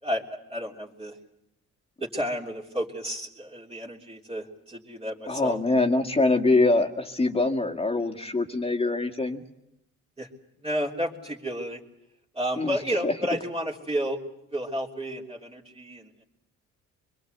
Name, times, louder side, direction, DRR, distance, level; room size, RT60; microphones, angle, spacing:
voice 1, 0.0-1.2 2.0-5.6 10.2-10.3 10.6-11.8 12.3-14.2 14.5-16.2, equal, 20° right, -2 dB, 3.4 m, -31 dB
voice 2, 5.3-9.4 12.6-13.1, left 2 dB, 20° left, 3 dB, 2.0 m, -24 dB
25.5 x 22.5 x 8.0 m, 0.83 s
cardioid pair, 90°, 30 cm